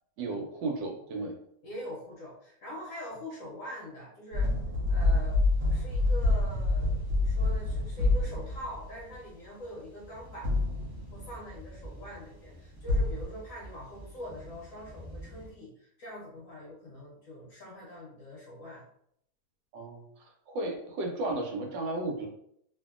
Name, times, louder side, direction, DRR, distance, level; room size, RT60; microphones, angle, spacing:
voice 1, 0.2-1.3 19.7-20.0 20.5-22.3, right 2 dB, 85° right, 1 dB, 1.3 m, -33 dB
voice 2, 1.6-4.5 4.9-5.4 5.7-10.5 11.1-18.8, equal, 60° left, -4 dB, 0.9 m, -43 dB
sound 1, 4.3-9.0 10.4-11.3 12.9-13.2, left 2 dB, 65° right, 0.9 m, -27 dB
sound 2, 5.0-15.5, equal, 5° left, 1.0 m, -50 dB
2.8 x 2.6 x 2.4 m, 0.72 s
omnidirectional pair, 2.0 m